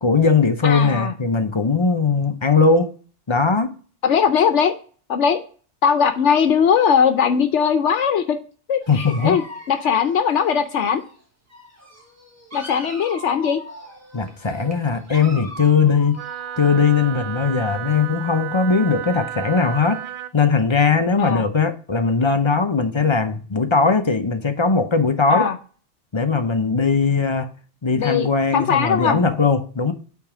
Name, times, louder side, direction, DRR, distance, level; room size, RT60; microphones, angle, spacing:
voice 1, 0.0-2.9 3.3-3.7 8.9-9.4 14.1-16.2 16.6-20.0 20.3-25.5 26.1-27.5 27.8-29.9, left 4 dB, 30° left, 0.6 m, -19 dB
voice 2, 0.6-1.1 4.0-4.7 5.1-5.4 5.8-8.4 8.7-11.0 12.5-13.6 21.2-21.4 25.3-25.6 27.9-28.3 28.5-29.2, left 7 dB, 75° left, 1.0 m, -19 dB
Dog, 8.8-11.2 11.5-17.5, equal, 15° right, 1.3 m, -40 dB
Wind instrument woodwind instrument, 16.2-20.3, right 12 dB, 60° right, 0.6 m, -33 dB
8.8 x 3.6 x 4.8 m
omnidirectional pair, 1.2 m